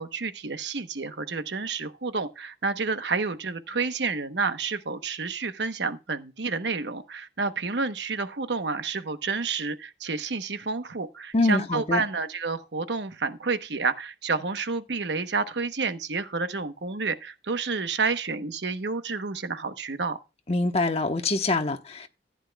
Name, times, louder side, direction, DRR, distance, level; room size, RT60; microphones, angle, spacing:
voice 1, 0.0-20.2, right 4 dB, 80° right, 1.0 m, -30 dB
voice 2, 11.3-12.0 20.5-22.1, left 2 dB, 35° left, 1.1 m, -25 dB
14.5 x 10.0 x 2.3 m
head